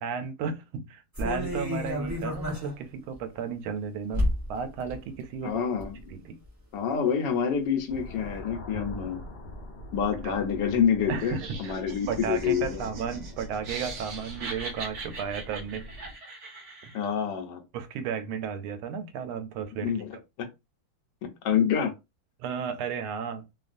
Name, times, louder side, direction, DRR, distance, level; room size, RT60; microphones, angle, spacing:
voice 1, 0.0-5.6 6.1-6.4 8.7-9.0 10.2-10.3 11.1-11.8 12.1-15.8 17.7-19.9 22.4-23.4, right 6 dB, 90° right, 1.4 m, -34 dB
sound 1, 1.1-2.8 3.2-3.3 4.1-4.5 4.8-5.0 5.5-6.0 6.4-6.5, left 1 dB, 25° right, 0.3 m, -30 dB
voice 2, 5.4-5.9 6.2-6.3 6.7-9.2 9.9-12.9 16.9-17.6 19.8-20.5 21.2-21.9, left 7 dB, 70° left, 1.2 m, -27 dB
sound 2, 7.9-16.1, left 1 dB, 40° left, 0.9 m, -43 dB
Laughter, 11.2-17.0, right 3 dB, 60° right, 1.1 m, -41 dB
3.3 x 2.3 x 2.5 m
omnidirectional pair, 2.2 m